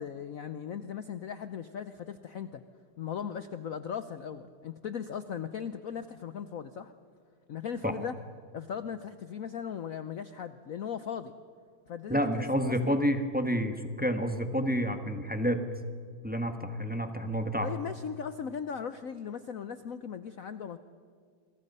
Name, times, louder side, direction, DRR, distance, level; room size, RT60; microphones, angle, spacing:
voice 1, 0.0-2.6 3.0-6.9 7.5-8.1 8.5-11.3 11.9-13.0 17.6-20.8, left 7 dB, 75° left, 11 dB, 0.7 m, -38 dB
voice 2, 12.1-15.6 16.2-17.7, equal, 5° right, 6 dB, 0.9 m, -29 dB
28.0 x 23.0 x 5.5 m, 2.1 s
omnidirectional pair, 2.4 m